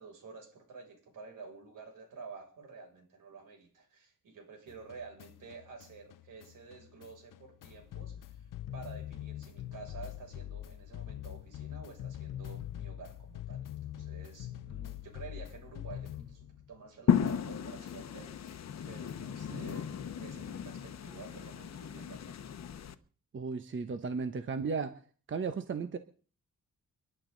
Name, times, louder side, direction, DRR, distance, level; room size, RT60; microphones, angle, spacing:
voice 1, 0.0-8.5 8.7-22.3, right 4 dB, 80° right, 2 dB, 6.8 m, -50 dB
sound 1, 4.7-17.0 17.3-20.0, left 12 dB, 85° left, 0.9 m, -45 dB
sound 2, 17.1-22.9, left 8 dB, 55° left, 1.1 m, -34 dB
voice 2, 23.3-24.9 25.3-26.0, right 5 dB, 40° right, 8 dB, 1.1 m, -35 dB
30.0 x 11.5 x 4.0 m, 0.42 s
wide cardioid pair, 140°, 32 cm